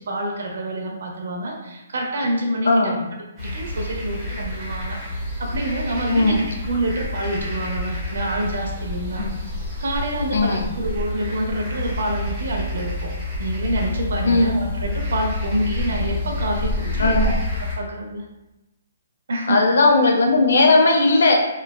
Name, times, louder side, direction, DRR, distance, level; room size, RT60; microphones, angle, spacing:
voice 1, 0.0-2.9 3.4-9.3 9.8-13.1 13.4-17.3 17.6-18.2 19.3-19.7, right 1 dB, 65° right, 1 dB, 0.6 m, -27 dB
voice 2, 2.7-3.0 6.1-6.4 9.2-9.3 10.3-10.7 14.3-14.5 17.0-17.4 19.5-21.4, left 2 dB, 70° left, 2 dB, 0.5 m, -17 dB
sound 1, 3.4-17.8, left 2 dB, 10° right, 0.8 m, -28 dB
3.1 x 2.2 x 2.2 m, 0.99 s
hypercardioid pair, 175°, 0 cm